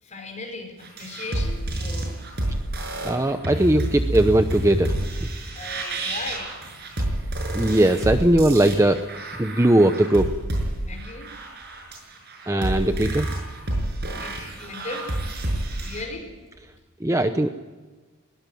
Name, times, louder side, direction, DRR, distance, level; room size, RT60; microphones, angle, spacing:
voice 1, 0.0-2.1 5.5-6.6 10.9-11.3 14.1-15.2 15.8-16.6, left 3 dB, 35° left, 3 dB, 5.2 m, -37 dB
sound 1, 0.8-16.0, right 1 dB, 45° right, 6.4 m, -29 dB
voice 2, 3.0-5.1 7.5-9.0 9.4-10.3 12.5-13.3 17.0-17.5, right 1 dB, 15° right, 8 dB, 0.7 m, -19 dB
21.0 x 18.5 x 9.3 m, 1.3 s
head